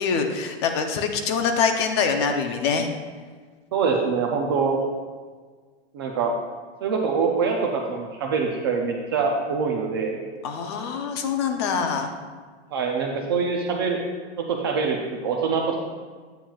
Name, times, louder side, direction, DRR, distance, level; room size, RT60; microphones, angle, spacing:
voice 1, 0.0-2.9 10.4-12.1, left 5 dB, 25° left, 5 dB, 0.5 m, -24 dB
voice 2, 3.7-4.8 5.9-6.3 6.8-10.2 12.7-14.0 14.4-15.0 15.2-15.8, right 5 dB, 25° right, 1 dB, 0.4 m, -24 dB
9.1 x 8.8 x 2.3 m, 1.5 s
supercardioid pair, 170°, 32 cm